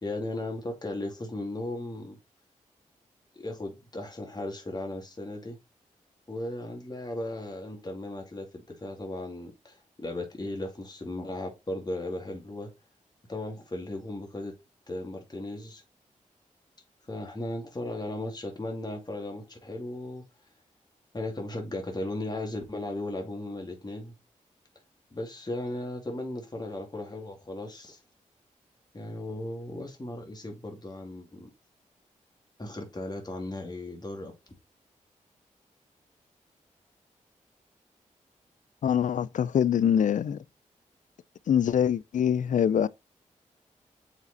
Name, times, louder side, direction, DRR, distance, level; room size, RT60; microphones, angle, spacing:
voice 1, 0.0-2.2 3.3-5.6 6.3-12.7 13.3-14.5 14.9-15.8 17.1-20.2 21.1-24.2 25.1-28.0 28.9-31.5 32.6-34.3, left 1 dB, 30° left, 2.4 m, -36 dB
voice 2, 38.8-40.4 41.5-42.9, left 9 dB, 65° left, 0.4 m, -24 dB
6.9 x 4.3 x 4.1 m
cardioid pair, 50°, 14 cm